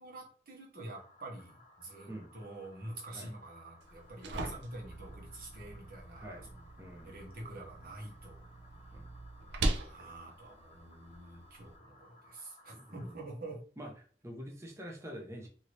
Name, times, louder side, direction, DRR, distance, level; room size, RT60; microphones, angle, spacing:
voice 1, 0.0-6.7 7.0-8.4 9.7-13.6, right 2 dB, 55° right, -1 dB, 1.1 m, -47 dB
sound 1, 0.8-13.2, left 1 dB, 40° left, 0.7 m, -61 dB
sound 2, 3.8-11.8, right 2 dB, 75° right, 0.5 m, -41 dB
voice 2, 6.2-6.5 6.8-7.2 8.9-9.1 12.7-13.2 13.8-13.9 14.2-15.5, equal, 15° right, 1 dB, 0.6 m, -46 dB
2.8 x 2.6 x 3.1 m, 0.42 s
head